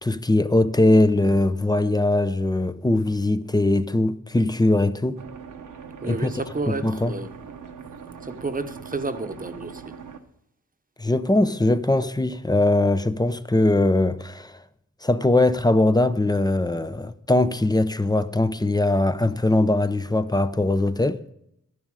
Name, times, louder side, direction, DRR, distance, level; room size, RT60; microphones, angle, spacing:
voice 1, 0.0-5.2 6.0-6.3 6.8-7.1 11.0-14.6 15.0-21.2, left 2 dB, 15° left, 0.6 m, -21 dB
sound 1, 5.2-10.2, right 6 dB, 85° right, 1.1 m, -41 dB
voice 2, 6.0-7.3 8.2-9.9, right 3 dB, 25° right, 1.0 m, -31 dB
13.0 x 11.0 x 4.8 m
cardioid pair, 80°, 31 cm